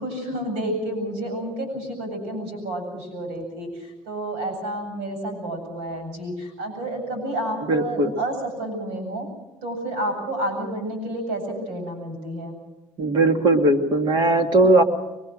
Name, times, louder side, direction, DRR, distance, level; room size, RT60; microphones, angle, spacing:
voice 1, 0.0-9.3 9.6-12.6, right 1 dB, 90° right, 5 dB, 7.8 m, -30 dB
voice 2, 7.7-8.1 13.0-14.8, right 2 dB, 55° right, 5 dB, 2.2 m, -18 dB
23.5 x 22.0 x 6.4 m, 1.1 s
cardioid pair, 90°, 9 cm